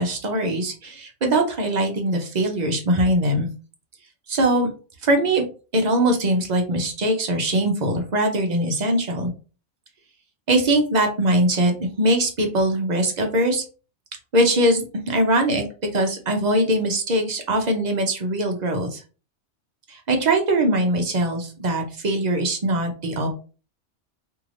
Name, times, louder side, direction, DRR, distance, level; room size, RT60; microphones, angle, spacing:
voice 1, 0.0-3.5 4.3-4.7 5.0-5.4 5.7-9.3 10.5-13.6 14.3-19.0 19.9-23.4, right 1 dB, 45° right, 4 dB, 0.6 m, -21 dB
3.2 x 2.7 x 2.5 m, 0.35 s
omnidirectional pair, 1.2 m